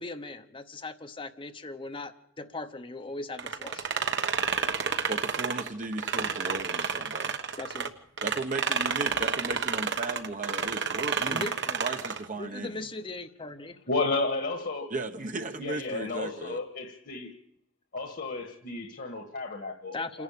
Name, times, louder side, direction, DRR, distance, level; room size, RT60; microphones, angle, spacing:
voice 1, 0.0-3.9 7.6-7.9 11.3-11.8 12.4-13.8 19.9-20.2, left 2 dB, 25° left, 0.9 m, -39 dB
sound 1, 3.4-7.9 8.2-12.3, right 6 dB, 60° right, 1.2 m, -30 dB
voice 2, 5.0-7.4 8.2-11.5 11.8-12.9 14.9-16.6, right 3 dB, 40° right, 1.0 m, -36 dB
voice 3, 13.9-14.9 15.6-17.3 17.9-20.2, left 3 dB, 55° left, 1.7 m, -32 dB
28.0 x 11.0 x 8.4 m
head